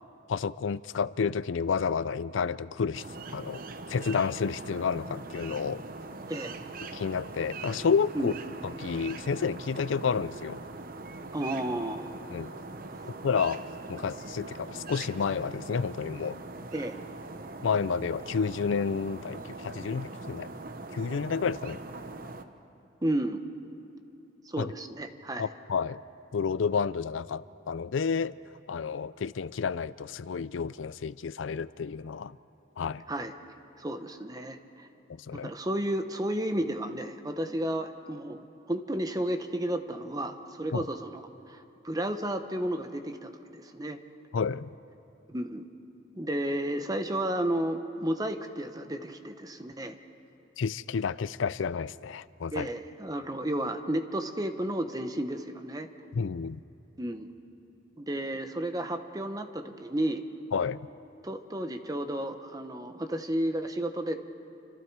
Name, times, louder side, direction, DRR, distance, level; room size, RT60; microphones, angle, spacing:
voice 1, 0.3-3.0 3.3-3.6 3.9-5.8 6.9-8.3 8.6-10.6 12.3-12.5 13.2-13.6 13.9-16.4 17.6-20.5 20.9-21.8 24.6-24.7 25.4-26.0 26.3-28.3 28.7-32.4 32.8-33.0 35.1-35.5 40.7-40.8 44.3-44.7 50.6-52.7 56.1-56.6 60.5-60.9, left 5 dB, 85° left, 17 dB, 0.4 m, -30 dB
sound 1, 2.9-22.4, right 3 dB, 50° right, 0.9 m, -42 dB
voice 2, 11.3-12.1 16.7-17.0 23.0-23.4 24.5-25.5 33.1-33.3 33.8-34.9 35.4-41.2 41.5-44.0 45.3-45.6 46.1-50.0 52.5-55.9 57.0-57.3 58.0-60.2 61.2-64.1, right 1 dB, 20° right, 8 dB, 1.0 m, -32 dB
29.0 x 26.0 x 4.7 m, 2.8 s
head